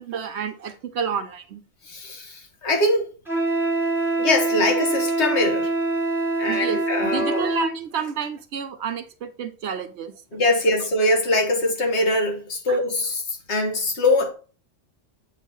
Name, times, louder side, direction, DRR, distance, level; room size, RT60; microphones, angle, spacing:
voice 1, 0.0-1.6 6.5-10.1 12.7-12.8, right 6 dB, 70° right, 1.0 m, -30 dB
voice 2, 1.9-3.1 4.2-5.7 6.4-7.4 10.3-14.3, left 2 dB, 70° left, 1.7 m, -22 dB
Wind instrument woodwind instrument, 3.3-7.7, right 2 dB, ahead, 1.5 m, -24 dB
8.1 x 3.6 x 5.4 m
omnidirectional pair, 1.2 m